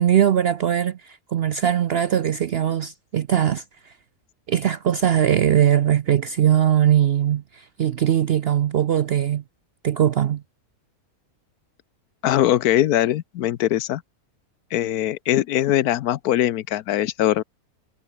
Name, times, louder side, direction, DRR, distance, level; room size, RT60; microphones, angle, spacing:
voice 1, 0.0-3.9 4.5-9.4 9.8-10.4, right 10 dB, 65° right, 0.6 m, -20 dB
voice 2, 12.2-14.0 14.7-17.4, left 13 dB, 80° left, 1.2 m, -21 dB
omnidirectional pair, 1.6 m